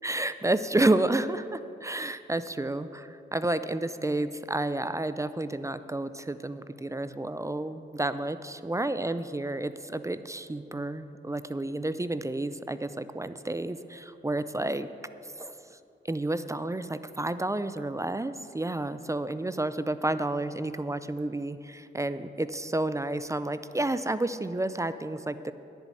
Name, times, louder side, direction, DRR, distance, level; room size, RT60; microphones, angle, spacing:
voice 1, 0.0-14.9 15.3-15.7 16.0-25.5, right 2 dB, 15° right, 13 dB, 0.5 m, -30 dB
11.0 x 7.2 x 8.4 m, 2.7 s
cardioid pair, 60°, 21 cm